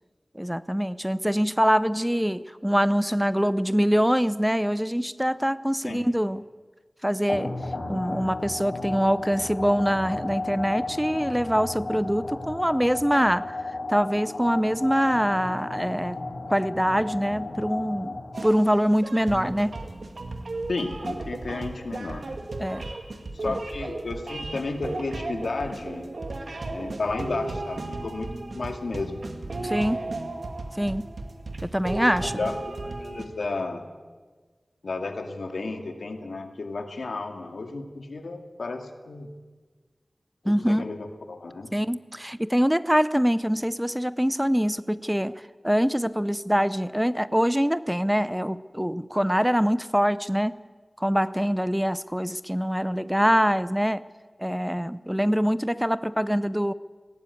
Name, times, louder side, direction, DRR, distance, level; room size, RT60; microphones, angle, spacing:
voice 1, 0.4-6.4 7.0-7.6 7.9-13.5 13.9-16.2 16.5-19.8 22.6-22.8 23.5-23.6 29.6-30.0 30.7-31.0 31.6-32.3 40.5-40.9 41.7-50.6 51.0-54.0 54.4-56.7, equal, 5° right, 16 dB, 0.5 m, -24 dB
sound 1, 7.3-18.6, left 2 dB, 70° left, 3.9 m, -34 dB
sound 2, 18.3-33.3, right 2 dB, 75° right, 2.3 m, -35 dB
voice 2, 20.7-22.3 23.3-26.1 26.7-29.2 32.2-33.9 34.8-39.3 40.4-41.7, left 3 dB, 90° left, 5 dB, 2.1 m, -33 dB
18.5 x 18.0 x 8.4 m, 1.4 s
wide cardioid pair, 70°, 0 cm